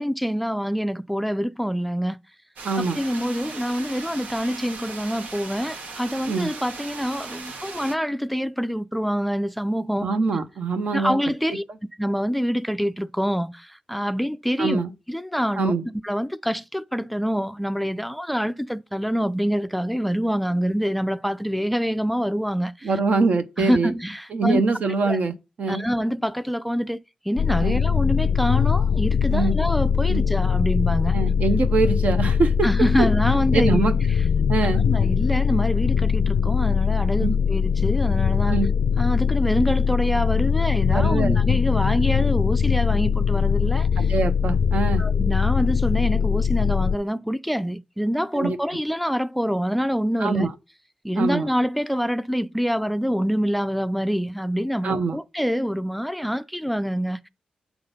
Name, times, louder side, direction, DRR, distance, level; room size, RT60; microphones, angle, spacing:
voice 1, 0.0-2.2 2.8-10.1 10.9-11.6 12.0-14.8 15.1-15.7 16.0-22.9 23.6-24.6 25.1-25.2 25.7-27.0 27.2-31.2 32.6-33.8 34.6-38.6 39.0-44.1 45.0-50.5 51.0-57.3, equal, ahead, 0.4 m, -26 dB
voice 2, 2.6-3.0 6.3-6.5 10.0-11.2 14.6-14.9 15.6-15.9 22.8-23.9 24.3-25.8 27.6-27.8 29.3-29.5 30.1-30.2 31.1-32.7 33.5-34.0 34.5-34.8 37.2-37.3 38.5-38.7 40.9-41.4 44.0-45.0 48.3-48.6 50.2-50.5 51.2-51.5 54.8-55.2, right 4 dB, 65° right, 0.9 m, -23 dB
sound 1, 2.6-7.9, right 4 dB, 85° right, 1.2 m, -38 dB
sound 2, 27.4-47.0, left 7 dB, 70° left, 0.4 m, -21 dB
7.1 x 3.8 x 5.4 m
cardioid pair, 65°, 3 cm